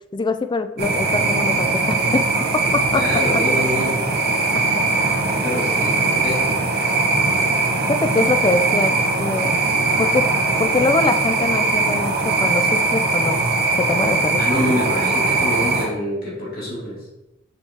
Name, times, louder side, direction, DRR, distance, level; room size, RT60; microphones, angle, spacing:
voice 1, 0.1-2.2 2.5-3.0 8.0-9.5 10.0-10.3 10.6-13.4 13.8-14.4 14.7-14.8, left 3 dB, 20° left, 9 dB, 0.3 m, -23 dB
sound 1, 0.8-15.9, right 3 dB, 50° right, 1.1 m, -20 dB
voice 2, 2.6-4.3 5.3-6.6 14.4-17.0, left 1 dB, 45° left, -5 dB, 2.4 m, -26 dB
6.5 x 5.8 x 2.9 m, 0.94 s
head